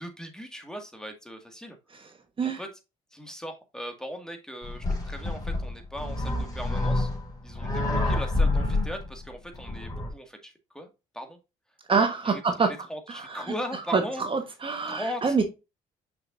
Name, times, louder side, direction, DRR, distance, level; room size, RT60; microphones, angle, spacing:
voice 1, 0.0-2.1 2.4-2.7 3.1-7.1 7.4-10.9 11.1-11.4 11.9-14.3 14.9-15.4, equal, 5° left, 2.0 m, -39 dB
sound 1, 4.6-10.1, left 2 dB, 25° left, 3.2 m, -28 dB
voice 2, 11.9-12.7 13.3-13.4 13.9-14.0 14.3-15.4, right 5 dB, 35° right, 1.3 m, -25 dB
6.3 x 5.8 x 2.6 m
cardioid pair, 85°, 16 cm